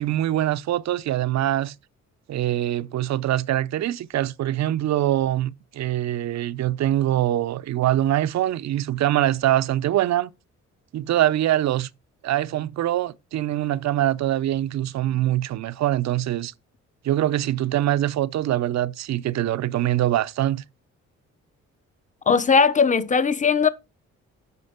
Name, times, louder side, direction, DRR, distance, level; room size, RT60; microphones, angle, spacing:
voice 1, 0.0-1.7 2.3-10.3 10.9-11.9 12.2-16.5 17.0-20.6, right 13 dB, 60° right, 0.6 m, -23 dB
voice 2, 22.3-23.7, left 5 dB, 25° left, 0.8 m, -18 dB
8.1 x 6.0 x 3.6 m
cardioid pair, 90°, 30 cm